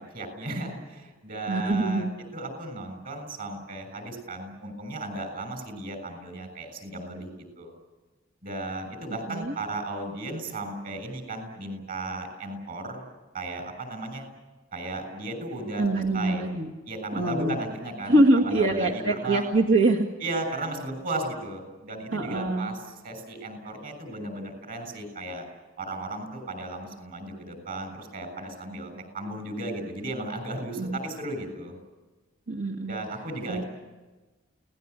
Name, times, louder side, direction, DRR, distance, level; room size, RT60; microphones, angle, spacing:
voice 1, 0.0-7.7 8.4-13.0 13.3-14.3 14.7-16.5 16.9-19.5 20.2-22.8 23.0-25.5 25.8-31.8 32.9-33.7, right 2 dB, 45° right, 8 dB, 7.1 m, -35 dB
voice 2, 1.5-2.1 9.3-9.5 15.8-16.7 17.1-17.6 18.1-20.1 22.1-22.7 30.8-31.0 32.5-32.9 33.5-33.6, right 2 dB, 75° right, 0 dB, 2.1 m, -24 dB
29.5 x 19.0 x 8.3 m, 1.2 s
head